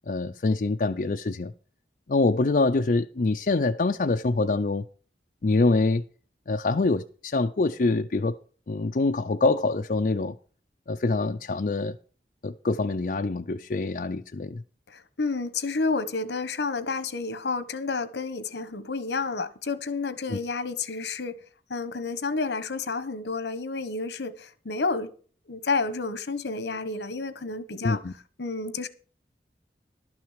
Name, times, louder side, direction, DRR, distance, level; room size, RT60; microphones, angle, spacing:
voice 1, 0.1-1.5 2.1-4.9 5.4-6.0 6.5-8.4 8.7-10.4 10.9-12.0 12.4-14.6 20.3-20.4 27.8-28.1, left 3 dB, 50° left, 0.5 m, -25 dB
voice 2, 14.9-21.4 21.7-25.1 25.5-28.0 28.4-28.9, left 4 dB, 80° left, 1.1 m, -30 dB
12.0 x 6.2 x 6.4 m
head